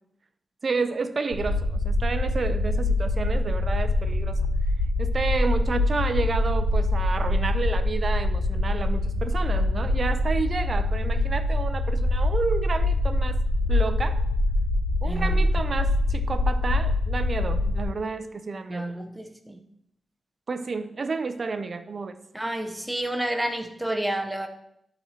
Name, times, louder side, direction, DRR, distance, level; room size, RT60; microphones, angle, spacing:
voice 1, 0.6-4.4 5.0-13.4 13.7-14.2 15.0-18.8 20.5-22.2, right 4 dB, 40° right, 0.5 m, -30 dB
sound 1, 1.3-17.8, left 2 dB, 50° left, 2.3 m, -24 dB
voice 2, 15.0-15.4 18.7-19.6 22.3-24.5, right 1 dB, 5° right, 0.8 m, -30 dB
11.5 x 4.2 x 4.3 m
wide cardioid pair, 125°, 0 cm